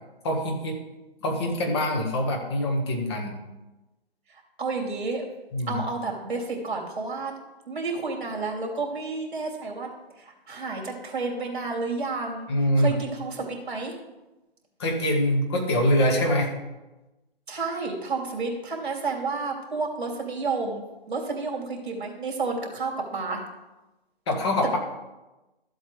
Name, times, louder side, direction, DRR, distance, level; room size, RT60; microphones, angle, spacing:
voice 1, 0.2-0.8 1.2-3.4 5.5-5.8 12.5-12.9 14.8-16.5 24.3-24.8, left 1 dB, 25° left, 1 dB, 1.5 m, -24 dB
voice 2, 4.6-5.3 5.7-7.3 7.7-9.9 10.2-12.5 12.8-13.9 17.5-23.4, right 3 dB, 50° right, 0 dB, 2.9 m, -30 dB
13.5 x 7.9 x 3.3 m, 1.1 s
hypercardioid pair, 160°, 31 cm